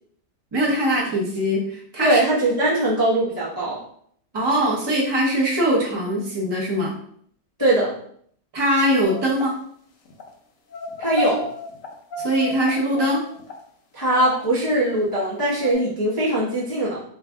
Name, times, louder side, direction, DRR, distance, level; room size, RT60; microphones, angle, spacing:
voice 1, 0.5-2.2 4.3-7.0 8.5-9.5 12.2-13.2, equal, 25° right, -4 dB, 0.5 m, -22 dB
voice 2, 2.0-3.8 7.6-7.9 11.0-11.5 13.9-17.0, right 1 dB, 25° left, -8 dB, 0.5 m, -21 dB
sound 1, 9.0-9.4 10.0-10.3 10.7-13.5 14.1-14.4 15.0-15.2 15.6-15.7, left 3 dB, 65° left, 0.9 m, -33 dB
3.2 x 2.5 x 3.5 m, 0.63 s
omnidirectional pair, 1.9 m